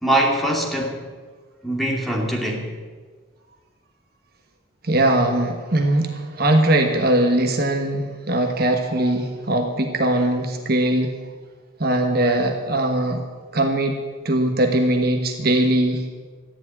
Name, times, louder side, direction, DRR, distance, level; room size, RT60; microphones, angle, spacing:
voice 1, 0.0-1.1 1.6-2.7, right 1 dB, ahead, -2 dB, 2.4 m, -22 dB
voice 2, 4.8-11.2 11.8-13.2 13.5-16.1, right 1 dB, 50° right, 4 dB, 1.4 m, -20 dB
14.0 x 10.5 x 9.4 m, 1.5 s
head